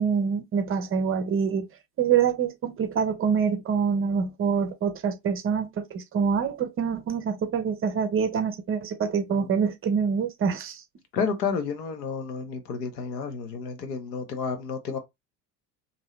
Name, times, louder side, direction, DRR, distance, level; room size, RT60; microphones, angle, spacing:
voice 1, 0.0-1.7 2.0-10.8, right 6 dB, 25° right, 0.6 m, -25 dB
voice 2, 11.1-15.0, left 5 dB, 75° left, 0.9 m, -31 dB
2.7 x 2.7 x 3.1 m
figure-of-eight pair, 65°, 50 cm